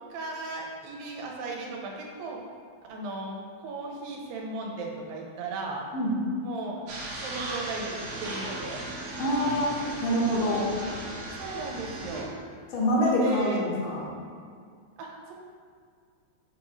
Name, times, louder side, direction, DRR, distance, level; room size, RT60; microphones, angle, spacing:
voice 1, 0.1-2.4 2.9-5.8 6.4-6.8 7.2-8.9 11.3-12.3 12.8-13.6 15.0-15.3, right 3 dB, 80° right, -1 dB, 2.5 m, -36 dB
sound 1, 6.9-12.2, right 2 dB, 65° right, 1.8 m, -37 dB
voice 2, 9.2-9.7 10.0-10.6 12.7-14.1, equal, 70° left, -4 dB, 2.4 m, -25 dB
6.6 x 5.1 x 3.0 m, 2.1 s
omnidirectional pair, 4.1 m